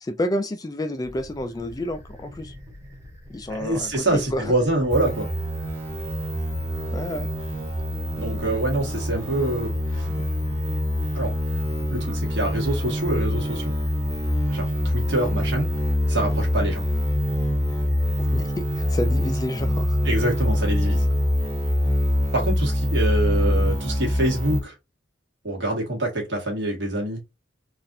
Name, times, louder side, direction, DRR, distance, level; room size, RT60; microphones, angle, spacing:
voice 1, 0.0-2.5 3.3-4.5 6.9-7.3 18.3-18.4 18.8-20.0, left 1 dB, 20° left, 0.3 m, -29 dB
sound 1, 1.0-19.3, left 1 dB, 15° right, 1.3 m, -44 dB
voice 2, 3.5-5.3 8.1-10.1 11.1-11.3 11.9-13.6 14.5-15.7 16.1-16.8 20.0-21.1 22.3-24.7 25.4-27.2, right 1 dB, 60° right, 1.6 m, -25 dB
sound 2, 4.9-24.6, left 1 dB, 35° right, 1.6 m, -25 dB
3.9 x 2.5 x 2.7 m
head